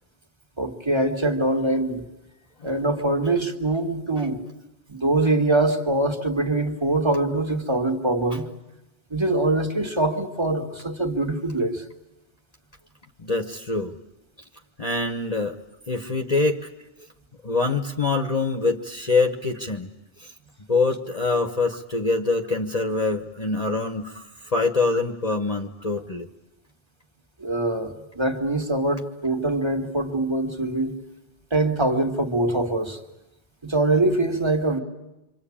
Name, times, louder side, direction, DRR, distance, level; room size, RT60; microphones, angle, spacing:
voice 1, 0.6-2.0 2.6-4.4 4.9-8.5 9.1-11.8 27.4-30.9 31.5-33.0 33.6-34.8, right 2 dB, 25° right, 3 dB, 2.1 m, -23 dB
voice 2, 13.2-14.0 14.8-15.6 15.9-16.7 17.4-19.9 20.2-20.3 20.7-24.1 24.4-26.3, left 3 dB, 35° left, 3 dB, 1.2 m, -24 dB
27.5 x 25.0 x 8.7 m, 0.98 s
omnidirectional pair, 1.2 m